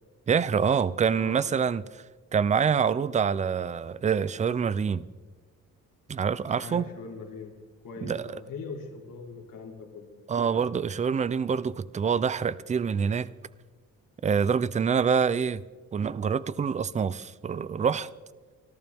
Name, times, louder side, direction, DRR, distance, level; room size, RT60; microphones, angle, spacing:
voice 1, 0.3-2.0 2.3-5.1 6.1-6.9 8.0-8.4 10.3-13.3 14.2-15.6 15.9-18.1, right 6 dB, 25° right, 0.3 m, -26 dB
voice 2, 6.5-7.5 7.8-10.1, left 4 dB, 90° left, 3.0 m, -41 dB
28.0 x 12.0 x 3.5 m
wide cardioid pair, 180°, 32 cm